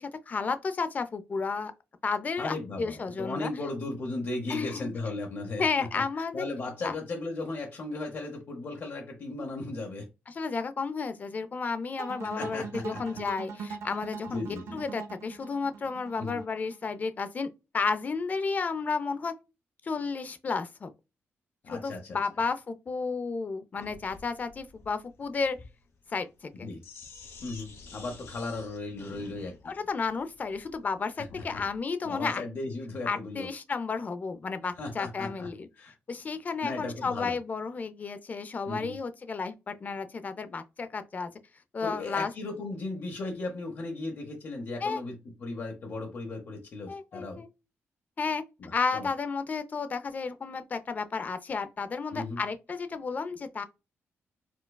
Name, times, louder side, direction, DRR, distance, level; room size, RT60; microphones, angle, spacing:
voice 1, 0.0-1.7 2.0-3.5 4.5-4.9 5.6-6.4 6.8-6.9 10.3-14.4 14.7-17.5 17.7-19.3 19.8-20.9 21.7-25.6 26.1-26.7 29.6-32.4 33.1-35.7 36.1-41.3 41.7-42.3 44.8-45.0 46.9-47.5 48.2-48.4 48.7-53.6, left 4 dB, 35° left, 0.4 m, -32 dB
voice 2, 2.4-10.0 12.4-13.2 14.3-14.8 16.2-16.4 21.6-22.2 26.5-26.8 27.4-29.7 31.2-31.6 32.0-33.5 34.8-35.5 35.8-35.9 36.6-37.4 38.7-39.0 41.8-45.1 45.4-47.4 48.6-49.1 52.1-52.4, left 2 dB, 55° left, 0.8 m, -36 dB
sound 1, 12.0-17.1, right 5 dB, 80° right, 0.5 m, -41 dB
Sink (filling or washing), 23.8-31.8, left 4 dB, 80° left, 1.2 m, -50 dB
4.4 x 2.2 x 2.2 m
cardioid pair, 110°, 5 cm